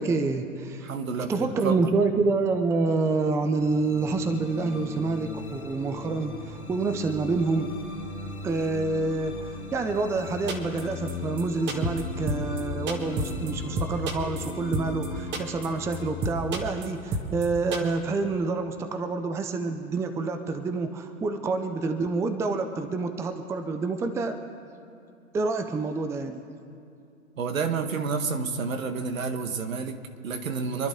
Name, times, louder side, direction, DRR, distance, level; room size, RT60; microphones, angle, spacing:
voice 1, 0.0-0.9 1.3-7.7 8.4-24.4 25.3-26.4, right 3 dB, 5° right, 7 dB, 0.6 m, -27 dB
voice 2, 0.8-1.9 27.4-30.9, right 5 dB, 70° right, 7 dB, 1.5 m, -30 dB
sound 1, 3.5-17.9, left 4 dB, 85° left, 3.0 m, -39 dB
sound 2, 10.5-10.8 11.1-11.2 11.4-11.5 11.7-12.0 12.3-12.6 12.9-13.5 13.8-15.1 15.3-15.7 15.9-16.0 16.2-16.9 17.1-17.5 17.7-17.8, right 2 dB, 25° right, 1.8 m, -29 dB
27.0 x 11.0 x 3.7 m, 2.6 s
figure-of-eight pair, 110°, 41 cm